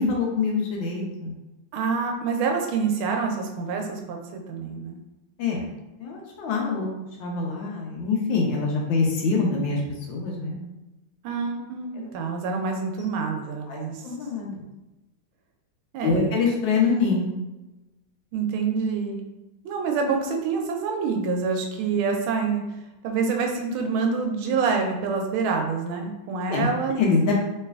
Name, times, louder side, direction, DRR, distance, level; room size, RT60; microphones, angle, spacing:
voice 1, 0.0-1.3 5.4-5.6 6.0-6.9 7.2-9.8 10.1-10.6 13.7-14.5 16.0-17.3 26.5-27.3, left 4 dB, 75° left, -1 dB, 1.3 m, -25 dB
voice 2, 1.7-5.0 11.2-14.0 15.9-16.3 18.3-19.2 19.6-22.6 23.0-27.0, right 5 dB, 80° right, 3 dB, 1.4 m, -26 dB
3.2 x 3.2 x 2.3 m, 1.0 s
omnidirectional pair, 2.3 m